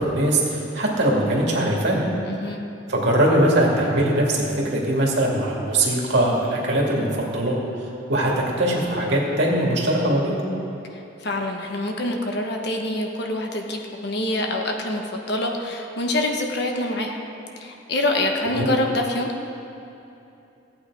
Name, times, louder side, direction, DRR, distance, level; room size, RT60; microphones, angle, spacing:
voice 1, 0.0-2.0 2.9-7.6 8.1-8.3 8.6-10.4 18.5-18.7, right 1 dB, 60° right, -3 dB, 2.3 m, -21 dB
voice 2, 2.2-2.6 10.9-17.2 17.6-19.3, left 1 dB, 55° left, 2 dB, 1.2 m, -26 dB
15.5 x 8.8 x 4.8 m, 2.8 s
head